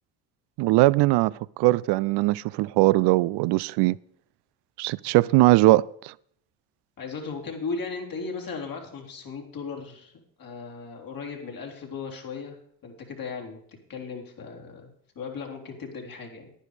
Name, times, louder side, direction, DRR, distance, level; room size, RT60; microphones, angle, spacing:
voice 1, 0.6-4.0 4.8-6.1, right 19 dB, 70° right, 0.5 m, -20 dB
voice 2, 7.0-10.1 10.4-12.6 12.8-13.6 13.9-16.5, left 4 dB, 55° left, 3.3 m, -36 dB
10.5 x 9.9 x 5.0 m
supercardioid pair, 70°, 41 cm